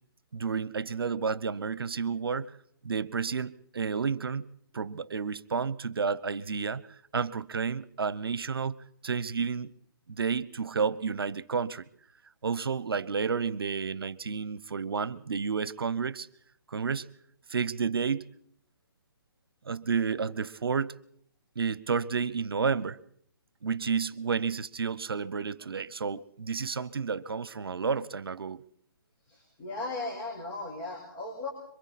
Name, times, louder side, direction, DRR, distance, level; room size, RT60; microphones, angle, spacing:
voice 1, 0.3-2.6 2.8-4.4 4.7-6.8 7.1-8.8 9.0-9.7 10.1-11.9 12.4-16.3 16.7-17.1 17.5-18.3 19.7-20.9 21.6-23.0 23.6-28.6, right 5 dB, 80° right, 0.9 m, -31 dB
voice 2, 29.2-31.5, left 2 dB, 20° left, 5.0 m, -37 dB
26.5 x 24.0 x 4.2 m
hypercardioid pair, 145°, 12 cm